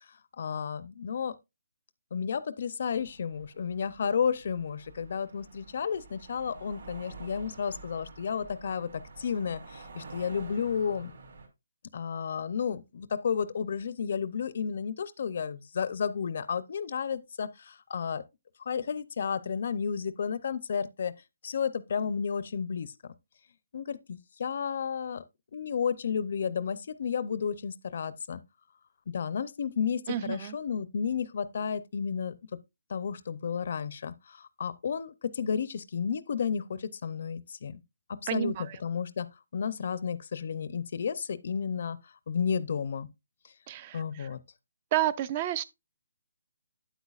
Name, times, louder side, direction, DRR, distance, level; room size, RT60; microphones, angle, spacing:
voice 1, 0.4-1.3 2.1-11.1 11.9-18.2 18.7-21.1 21.4-23.1 23.7-25.2 25.5-28.4 29.1-32.3 32.9-37.8 38.1-38.5 38.8-39.3 39.5-42.0 42.3-43.1 43.9-44.4, left 6 dB, 50° left, 0.5 m, -32 dB
sound 1, 2.9-11.5, right 3 dB, 70° right, 3.0 m, -49 dB
voice 2, 30.1-30.6 38.3-38.8 43.7-44.3 44.9-45.6, right 12 dB, 25° right, 0.4 m, -31 dB
9.1 x 8.1 x 2.4 m
hypercardioid pair, 170°, 0 cm